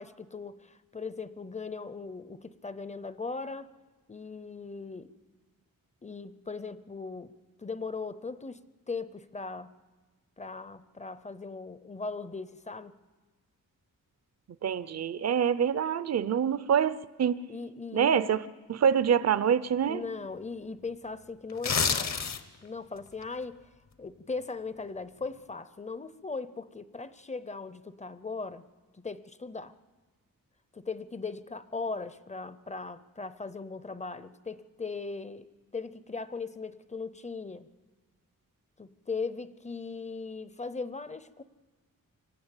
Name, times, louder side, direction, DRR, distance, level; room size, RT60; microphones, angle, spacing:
voice 1, 0.0-3.7 4.1-5.1 6.0-7.3 7.6-8.6 8.9-9.7 10.4-12.9 17.5-18.3 19.9-22.3 22.6-23.6 24.0-28.6 28.9-29.7 30.7-35.5 35.7-37.7 38.8-41.4, left 4 dB, 20° left, 14 dB, 0.6 m, -38 dB
voice 2, 14.6-17.4 17.9-18.4 18.7-20.0, right 8 dB, 50° right, 15 dB, 0.6 m, -26 dB
sound 1, 21.5-22.7 23.1-23.2, left 6 dB, 55° left, 0.9 m, -28 dB
25.0 x 13.0 x 8.9 m, 1.3 s
wide cardioid pair, 155°, 33 cm